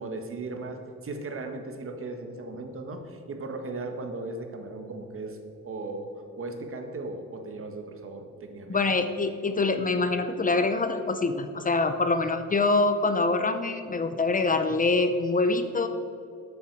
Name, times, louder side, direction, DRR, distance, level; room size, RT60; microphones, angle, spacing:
voice 1, 0.0-5.4 5.6-8.8, right 2 dB, 45° right, 5 dB, 1.6 m, -37 dB
voice 2, 8.7-15.9, left 3 dB, 25° left, 8 dB, 0.7 m, -25 dB
13.0 x 8.7 x 4.8 m, 2.8 s
cardioid pair, 90°, 30 cm